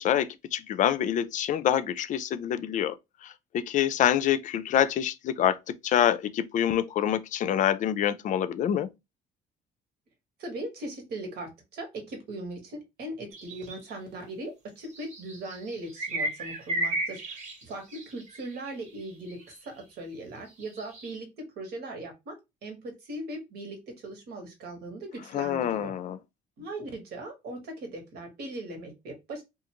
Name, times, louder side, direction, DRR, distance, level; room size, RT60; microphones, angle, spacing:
voice 1, 0.0-5.6 5.8-8.9 25.3-26.2, left 10 dB, 50° left, 0.4 m, -26 dB
voice 2, 10.4-22.4 22.6-26.0 26.6-29.4, right 1 dB, 70° right, 1.2 m, -39 dB
sound 1, 13.3-13.9 14.8-19.8 20.5-21.2, right 1 dB, 45° right, 0.9 m, -34 dB
2.5 x 2.4 x 2.8 m
cardioid pair, 110°, 17 cm